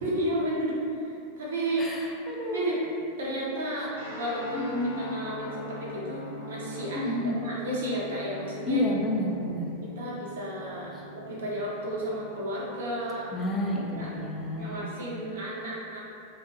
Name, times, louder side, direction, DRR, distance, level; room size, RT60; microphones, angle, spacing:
voice 1, 0.0-1.9 2.5-2.8 3.2-8.8 9.8-13.3 13.9-14.1 14.5-16.0, right 1 dB, 60° right, -5 dB, 0.6 m, -32 dB
voice 2, 1.8-2.6 4.5-5.0 6.9-7.4 8.7-9.7 10.9-11.0 13.3-14.9, left 1 dB, 15° left, -3 dB, 0.4 m, -30 dB
sound 1, 3.9-14.3, equal, 85° left, 0.7 m, -43 dB
2.5 x 2.3 x 2.8 m, 2.6 s
figure-of-eight pair, 90°, 0 cm